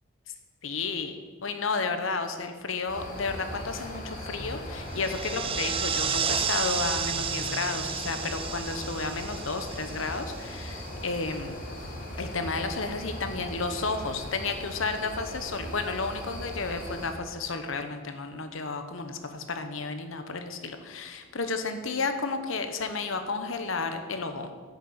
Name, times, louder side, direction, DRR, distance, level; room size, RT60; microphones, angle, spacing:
voice 1, 0.6-11.5 12.2-24.5, left 4 dB, 75° left, 7 dB, 1.1 m, -32 dB
sound 1, 2.9-17.1, left 1 dB, 40° left, 2.1 m, -39 dB
sound 2, 4.9-10.7, right 7 dB, 25° right, 0.6 m, -32 dB
9.2 x 6.7 x 8.4 m, 1.5 s
head